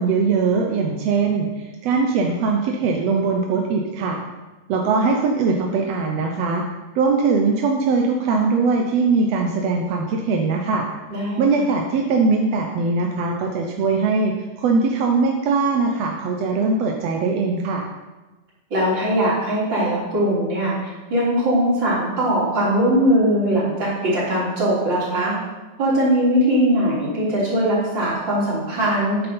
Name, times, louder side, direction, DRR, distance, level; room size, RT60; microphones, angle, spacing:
voice 1, 0.0-4.2 4.7-6.6 6.9-10.9 11.4-14.3 14.6-17.8, right 4 dB, 70° right, 1 dB, 1.6 m, -21 dB
voice 2, 11.1-11.4 18.7-20.8 21.1-25.3 25.8-29.2, equal, 35° right, -7 dB, 3.9 m, -20 dB
9.0 x 8.6 x 5.4 m, 1.2 s
omnidirectional pair, 3.8 m